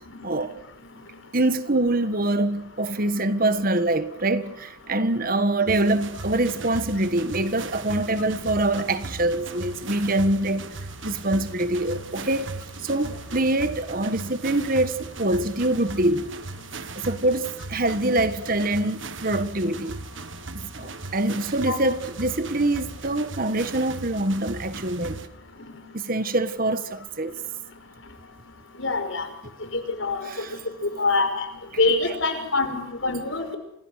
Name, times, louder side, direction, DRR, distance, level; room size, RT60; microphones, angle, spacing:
voice 1, 0.2-0.5 1.3-10.6 11.0-12.5 12.8-16.3 16.9-20.0 20.8-25.2 25.9-27.3 30.2-30.6 31.7-31.9, right 2 dB, 45° right, 1.5 m, -24 dB
sound 1, 5.7-25.3, right 3 dB, 65° right, 1.6 m, -38 dB
voice 2, 28.8-29.3 29.7-30.3 31.0-31.5 31.8-33.6, left 3 dB, 65° left, 5.8 m, -24 dB
29.0 x 27.5 x 6.6 m
head